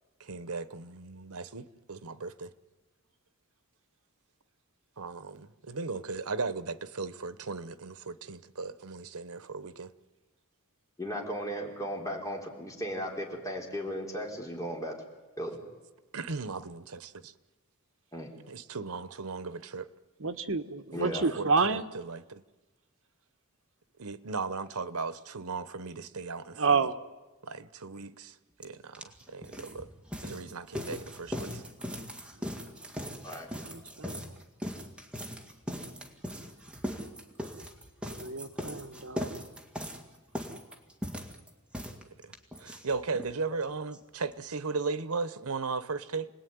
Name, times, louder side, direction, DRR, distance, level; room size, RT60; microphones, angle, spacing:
voice 1, 0.2-2.5 5.0-9.9 16.1-17.3 18.5-19.9 21.0-22.4 24.0-26.9 27.4-29.9 30.2-31.6 42.2-42.3 42.6-46.3, right 4 dB, 85° right, 1.1 m, -37 dB
voice 2, 11.0-15.0 15.4-15.6 18.1-18.3 20.9-21.3 33.2-33.5, equal, 15° left, 4.4 m, -36 dB
voice 3, 20.2-21.8 26.6-27.0 32.4-32.5 33.6-34.2 38.0-39.3, right 4 dB, 65° right, 1.4 m, -29 dB
sound 1, 28.6-28.7 28.9-43.3 43.6-43.7 43.9-44.0 44.3-44.4, equal, 5° right, 2.2 m, -39 dB
29.0 x 20.0 x 9.5 m
head